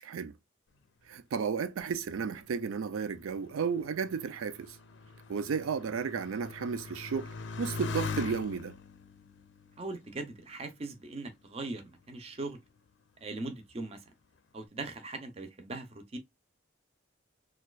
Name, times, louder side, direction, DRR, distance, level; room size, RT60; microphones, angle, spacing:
voice 1, 0.0-0.4 1.1-4.8 5.3-8.8, right 6 dB, 90° right, 0.4 m, -33 dB
Motorcycle, 2.1-11.1 11.8-12.4, left 4 dB, 60° left, 0.5 m, -42 dB
voice 2, 9.8-12.6 13.2-14.0 14.5-16.2, right 2 dB, 30° right, 0.5 m, -40 dB
4.2 x 2.3 x 2.2 m
head